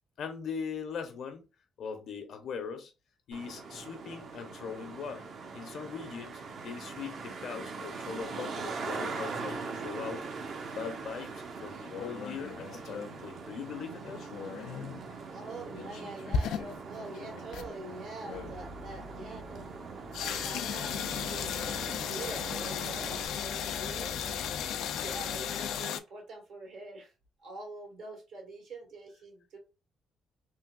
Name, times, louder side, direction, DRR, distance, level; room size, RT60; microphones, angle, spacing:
voice 1, 0.2-1.5 1.8-2.9 3.3-5.3 5.5-10.3 10.7-14.2 15.1-15.3, left 6 dB, 70° left, 0.7 m, -40 dB
Traffic noise roadway noise, 3.3-23.3, right 4 dB, 60° right, 0.7 m, -42 dB
sound 1, 11.9-13.2 14.0-15.0 15.7-17.7 18.2-18.6 20.1-26.0, left 8 dB, 85° left, 0.3 m, -36 dB
voice 2, 15.3-19.7 20.2-21.6 22.0-24.6 25.0-27.1 27.4-29.6, right 2 dB, 80° right, 1.8 m, -45 dB
sound 2, 18.3-25.8, left 1 dB, 10° left, 0.4 m, -48 dB
3.3 x 2.6 x 2.3 m
cardioid pair, 90°, 0 cm